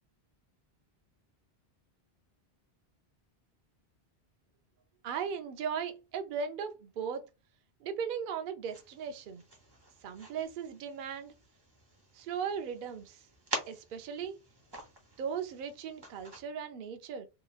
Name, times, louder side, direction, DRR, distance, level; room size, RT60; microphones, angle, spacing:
voice 1, 5.0-7.3 7.8-9.4 10.0-11.3 12.1-13.3 13.7-14.4 15.2-17.3, right 7 dB, 60° right, 0.6 m, -37 dB
sound 1, 8.6-16.4, right 1 dB, 25° right, 0.8 m, -46 dB
2.9 x 2.8 x 2.3 m
omnidirectional pair, 1.1 m